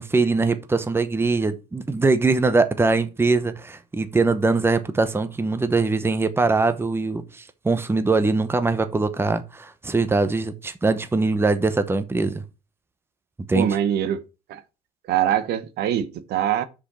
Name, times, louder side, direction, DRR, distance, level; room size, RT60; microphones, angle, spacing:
voice 1, 0.0-12.4 13.5-13.7, right 3 dB, 15° right, 0.9 m, -22 dB
voice 2, 13.5-14.2 14.5-14.6 15.1-16.6, right 10 dB, 75° right, 1.0 m, -23 dB
6.4 x 5.3 x 5.5 m
cardioid pair, 110°, 17 cm